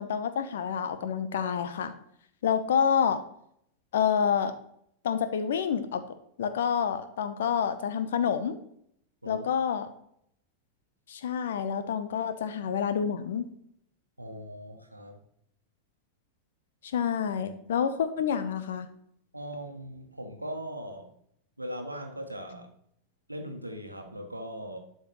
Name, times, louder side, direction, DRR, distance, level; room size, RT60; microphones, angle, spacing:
voice 1, 0.0-1.9 2.4-3.2 3.9-4.5 5.0-6.0 6.4-8.6 9.3-9.9 11.1-13.5 16.8-18.9, left 7 dB, 60° left, 11 dB, 0.8 m, -28 dB
voice 2, 14.2-15.2 19.3-21.1 21.6-22.7 23.3-24.8, equal, 85° right, 4 dB, 1.2 m, -39 dB
11.5 x 5.6 x 3.1 m, 0.70 s
figure-of-eight pair, 90°, 0 cm